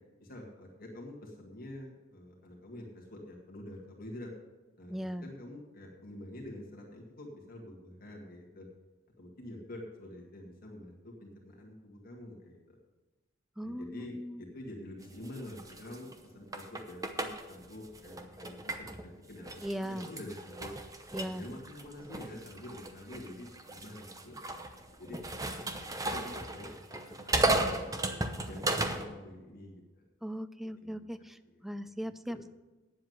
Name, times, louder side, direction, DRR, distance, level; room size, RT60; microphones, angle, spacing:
voice 1, 0.2-4.3 4.8-8.7 9.2-12.8 13.6-20.7 21.2-25.2 25.7-28.2 28.5-30.0 30.8-31.6 32.0-32.4, left 1 dB, 45° left, -1 dB, 1.9 m, -47 dB
voice 2, 4.9-5.3 13.6-14.4 19.6-20.1 21.1-21.5 30.2-32.5, equal, ahead, 13 dB, 0.3 m, -38 dB
sound 1, 15.0-19.0 19.4-29.1, right 2 dB, 15° right, 0.8 m, -35 dB
9.4 x 7.6 x 7.9 m, 1.2 s
head